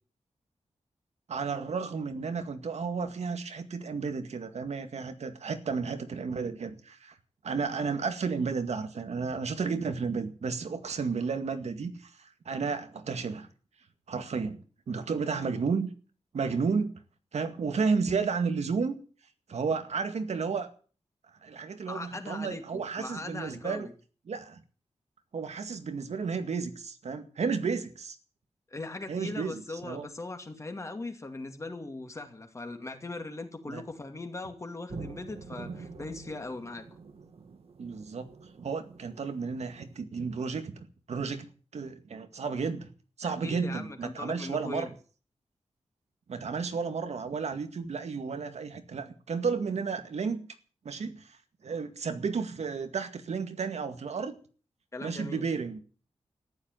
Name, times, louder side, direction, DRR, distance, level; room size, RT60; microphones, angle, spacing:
voice 1, 1.3-7.2 7.4-13.5 14.1-15.9 16.3-16.9 17.3-19.0 19.5-20.7 21.4-23.9 24.3-24.6 25.3-28.2 29.1-30.1 33.7-33.8 37.8-41.5 41.7-42.9 43.2-44.9 46.3-50.5 50.8-54.3 55.0-55.8, right 5 dB, 80° right, 8 dB, 2.1 m, -32 dB
voice 2, 21.9-23.9 28.7-36.9 43.2-44.9 54.9-55.5, left 2 dB, 25° left, 6 dB, 2.5 m, -40 dB
sound 1, 34.9-40.0, right 4 dB, 60° right, 2.2 m, -46 dB
14.5 x 11.0 x 9.1 m, 0.40 s
wide cardioid pair, 170°, 11 cm